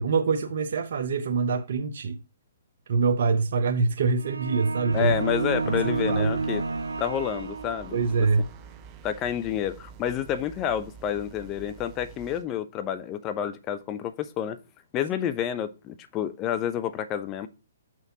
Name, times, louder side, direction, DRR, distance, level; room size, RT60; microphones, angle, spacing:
voice 1, 0.0-2.2 2.9-5.1 5.7-6.3 7.9-8.4, right 4 dB, 60° right, 0.8 m, -25 dB
sound 1, 4.2-8.2, right 4 dB, 90° right, 0.3 m, -30 dB
voice 2, 4.9-6.6 7.0-8.3 9.0-14.6 14.9-17.5, left 9 dB, 25° left, 0.7 m, -29 dB
sound 2, 4.9-12.5, right 7 dB, 25° right, 0.7 m, -47 dB
6.6 x 6.1 x 2.9 m
hypercardioid pair, 135°, 0 cm